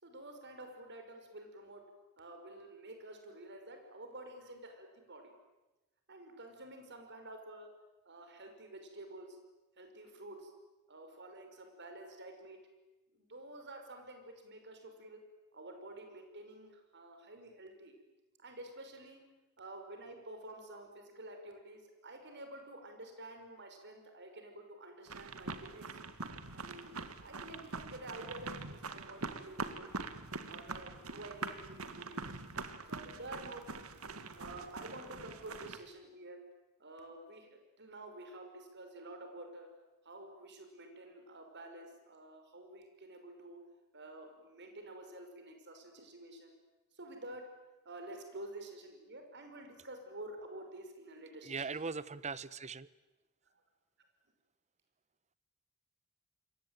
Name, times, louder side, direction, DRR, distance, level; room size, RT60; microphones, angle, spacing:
voice 1, 0.0-1.8 2.2-5.3 6.1-7.7 8.1-9.4 9.8-10.5 10.9-12.6 13.1-15.2 15.5-18.0 18.4-19.2 19.6-26.0 26.5-30.1 30.5-32.4 32.9-33.6 34.4-36.4 36.8-37.5 37.8-39.7 40.0-43.6 43.9-46.5 46.9-47.5 47.8-51.8, right 1 dB, 55° right, 5.9 m, -50 dB
sound 1, 25.1-35.8, right 3 dB, 85° right, 2.0 m, -44 dB
voice 2, 51.4-52.9, right 4 dB, 35° right, 0.9 m, -40 dB
28.5 x 23.0 x 9.3 m
head